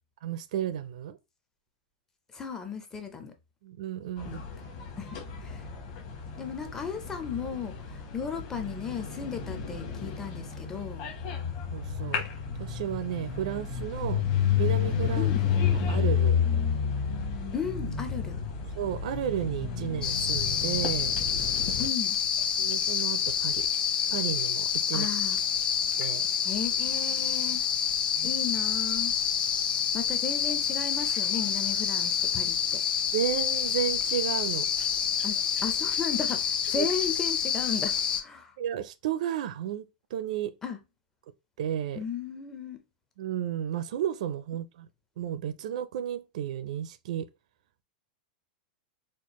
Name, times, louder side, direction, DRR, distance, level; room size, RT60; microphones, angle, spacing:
voice 1, 0.2-1.2 3.6-4.4 11.7-12.3 12.6-14.3 14.6-15.3 15.7-16.4 18.8-21.1 22.6-23.7 24.1-25.1 26.0-26.3 28.2-28.3 33.1-34.7 36.8-36.9 38.6-39.8 40.1-40.5 41.6-42.0 43.2-44.9 45.2-47.3, right 10 dB, 55° right, 0.4 m, -32 dB
voice 2, 2.3-3.3 4.2-4.5 5.0-5.6 6.4-11.1 15.1-15.5 17.5-18.4 21.8-22.2 24.9-25.4 26.4-27.6 28.2-29.2 29.9-32.8 35.2-38.6 40.6-40.8 42.0-42.8, left 6 dB, 10° left, 0.4 m, -35 dB
sound 1, 4.2-21.9, left 7 dB, 35° left, 0.9 m, -31 dB
sound 2, 20.0-38.2, left 8 dB, 90° left, 0.8 m, -28 dB
4.3 x 2.3 x 2.9 m
supercardioid pair, 175°, 5 cm